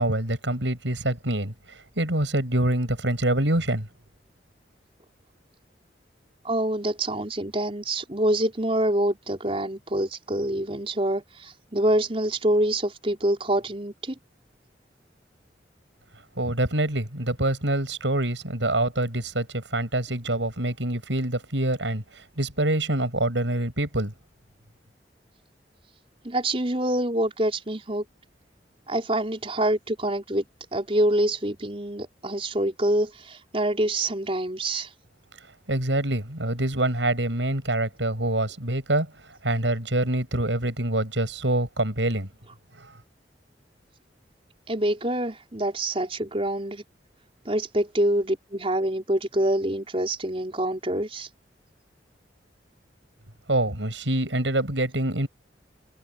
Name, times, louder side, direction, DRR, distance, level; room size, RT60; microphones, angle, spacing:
voice 1, 0.0-1.5 2.0-3.9 16.4-22.0 22.4-24.1 35.7-39.1 39.4-42.3 53.5-55.3, right 1 dB, 85° right, 7.3 m, -25 dB
voice 2, 6.4-11.2 11.7-14.1 26.2-28.0 28.9-30.4 30.7-33.1 33.5-34.9 44.7-46.8 47.5-51.3, right 1 dB, 30° right, 4.7 m, -25 dB
head